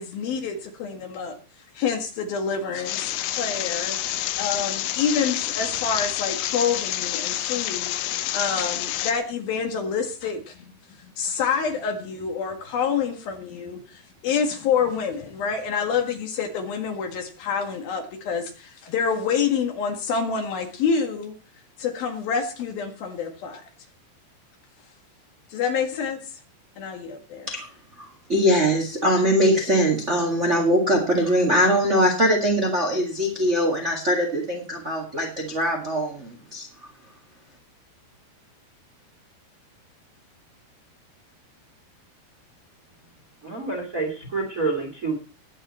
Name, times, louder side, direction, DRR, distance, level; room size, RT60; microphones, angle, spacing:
voice 1, 0.0-1.4 1.8-4.0 4.4-10.7 11.0-21.3 21.8-23.6 25.5-26.2 26.8-27.5, left 6 dB, 65° left, 4 dB, 3.5 m, -27 dB
sound 1, 2.8-9.1, left 13 dB, 85° left, 1.9 m, -28 dB
voice 2, 28.3-36.7, equal, 55° right, 1 dB, 0.7 m, -22 dB
voice 3, 43.4-45.1, right 3 dB, 25° right, 2 dB, 1.9 m, -28 dB
19.5 x 8.2 x 4.3 m, 0.37 s
omnidirectional pair, 4.8 m